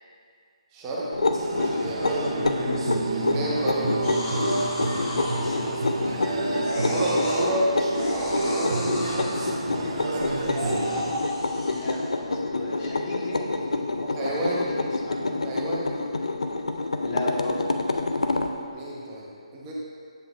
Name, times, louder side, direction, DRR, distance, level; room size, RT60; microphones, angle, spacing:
voice 1, 0.7-1.1 1.5-2.4 3.3-3.9 6.7-7.7 8.1-8.9 10.0-10.5 14.1-14.7 15.4-15.9 18.7-19.7, right 1 dB, 20° right, -5 dB, 1.0 m, -30 dB
sound 1, 1.1-18.5, left 3 dB, 75° left, 0.5 m, -28 dB
sound 2, 1.3-11.1, right 2 dB, 55° right, 0.8 m, -29 dB
voice 2, 2.5-2.9 6.6-7.1 11.7-15.5 17.0-17.7, left 1 dB, 45° left, -4 dB, 1.5 m, -35 dB
sound 3, 4.0-6.2 6.6-7.5 7.9-9.5 10.2-12.1 12.8-12.9, left 1 dB, 30° left, 1.2 m, -35 dB
7.9 x 7.2 x 2.6 m, 2.3 s
figure-of-eight pair, 145°, 3 cm